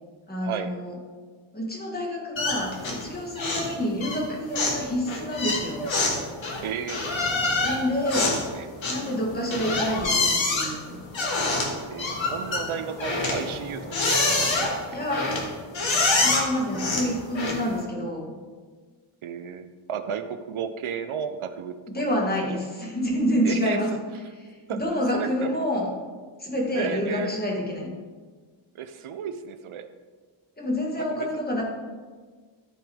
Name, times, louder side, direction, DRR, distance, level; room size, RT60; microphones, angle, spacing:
voice 1, 0.3-1.0 1.5-5.8 7.6-8.3 8.8-11.0 14.9-15.5 16.1-18.3 21.9-23.9 24.4-25.9 26.4-27.9 30.6-31.6, equal, 20° left, -2 dB, 1.6 m, -28 dB
sound 1, 2.4-3.1 3.4-3.7 4.0-17.8, left 2 dB, 65° left, 1.7 m, -26 dB
voice 2, 6.6-7.0 8.1-8.7 11.9-14.7 19.2-21.7 23.4-23.8 24.7-24.8 25.1-25.6 26.8-27.3 28.7-29.9 30.9-31.4, right 8 dB, 80° right, 9 dB, 0.7 m, -33 dB
13.5 x 5.1 x 3.6 m, 1.5 s
wide cardioid pair, 175°, 48 cm